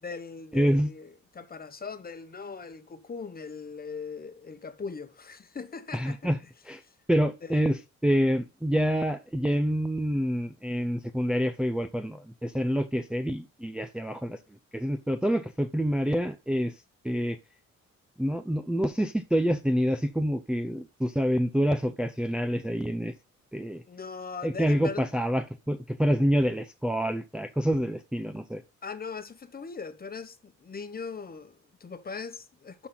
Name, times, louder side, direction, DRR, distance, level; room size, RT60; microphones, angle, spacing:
voice 1, 0.0-6.3 6.8-6.9 7.4-7.6 23.9-25.1 28.8-32.9, left 5 dB, 30° left, 1.1 m, -40 dB
voice 2, 0.5-0.9 5.9-6.4 6.7-6.8 7.1-7.8 8.0-14.4 14.7-16.7 17.0-17.4 18.2-23.1 23.5-23.8 24.4-28.6, equal, 5° right, 0.6 m, -27 dB
12.0 x 4.2 x 3.9 m
cardioid pair, 90°, 30 cm